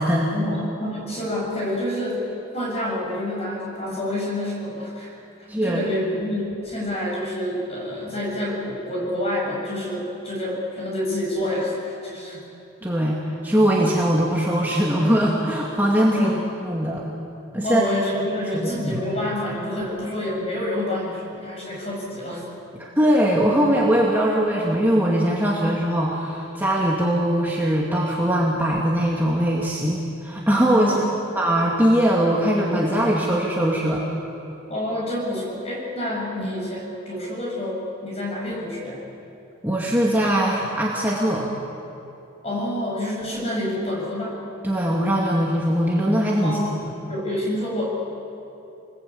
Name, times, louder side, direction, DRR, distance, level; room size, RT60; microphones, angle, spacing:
voice 1, 0.3-2.3 2.5-5.2 5.6-12.5 16.1-16.3 17.6-22.4 30.7-31.3 34.7-39.0 42.4-44.4 46.4-47.8, left 1 dB, 30° left, -3 dB, 7.7 m, -28 dB
voice 2, 5.5-5.8 12.8-16.3 16.6-17.0 17.5-17.8 18.5-19.0 22.7-30.9 31.4-34.0 39.6-41.5 44.6-46.6, equal, 10° right, -4 dB, 2.1 m, -21 dB
27.5 x 20.5 x 8.6 m, 3.0 s
head